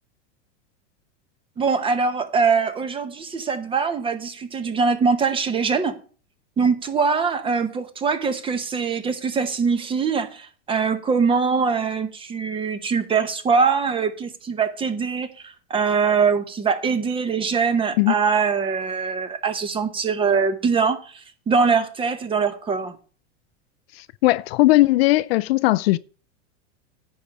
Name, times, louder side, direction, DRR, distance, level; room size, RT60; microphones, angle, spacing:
voice 1, 1.6-6.0 6.6-23.0, right 5 dB, 15° right, 0.8 m, -23 dB
voice 2, 24.0-26.0, left 19 dB, 60° left, 0.4 m, -18 dB
10.0 x 4.8 x 6.7 m
supercardioid pair, 150°, 36 cm